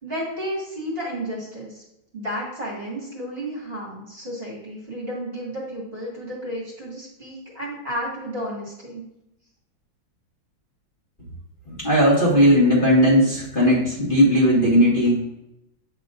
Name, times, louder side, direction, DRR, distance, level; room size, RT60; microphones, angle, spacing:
voice 1, 0.0-1.8 2.1-9.0, equal, 30° right, -5 dB, 1.9 m, -32 dB
voice 2, 11.7-15.2, equal, 25° left, -7 dB, 1.8 m, -17 dB
8.1 x 5.7 x 2.5 m, 0.88 s
omnidirectional pair, 2.1 m